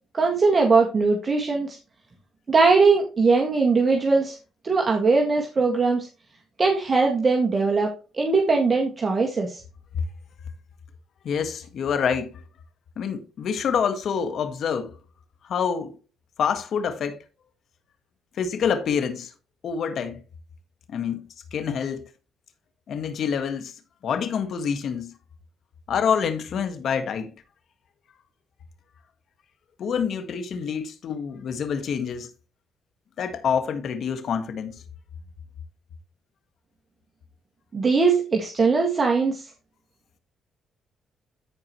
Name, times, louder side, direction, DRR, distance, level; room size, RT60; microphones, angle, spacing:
voice 1, 0.1-1.8 2.5-4.4 4.6-6.1 6.6-9.6 37.7-39.5, right 4 dB, 35° right, 1.8 m, -20 dB
voice 2, 11.2-12.4 13.0-14.9 15.4-16.0 16.4-17.2 18.4-19.3 19.6-20.2 20.9-22.1 22.9-23.7 24.0-25.1 25.9-27.3 29.8-32.3 33.2-34.8, left 7 dB, 65° left, 1.7 m, -27 dB
14.5 x 4.9 x 3.0 m
cardioid pair, 90°, 0 cm